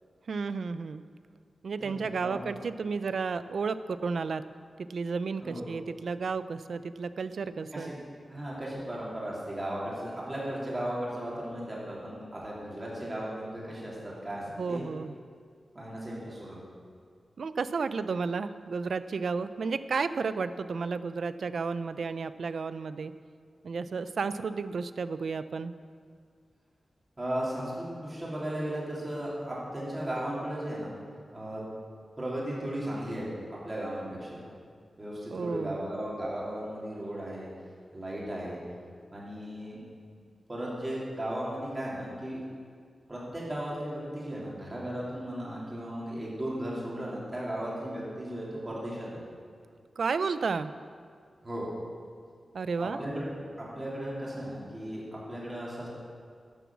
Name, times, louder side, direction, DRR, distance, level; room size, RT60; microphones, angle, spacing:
voice 1, 0.3-1.0 1.6-4.4 4.8-7.9 14.6-15.2 17.4-23.1 23.6-25.8 35.3-35.8 50.0-50.7 52.5-53.0, right 4 dB, 70° right, 13 dB, 0.4 m, -32 dB
voice 2, 1.8-2.4 5.4-5.6 7.7-8.0 8.3-14.8 15.7-16.6 27.2-30.9 31.3-31.6 32.2-34.4 35.0-37.5 37.9-38.6 39.1-39.8 40.5-42.4 43.1-49.2 51.4-51.7 52.8-53.3 53.6-55.9, right 1 dB, 20° right, -6 dB, 3.2 m, -36 dB
12.0 x 7.1 x 7.2 m, 2.1 s
wide cardioid pair, 155°, 0 cm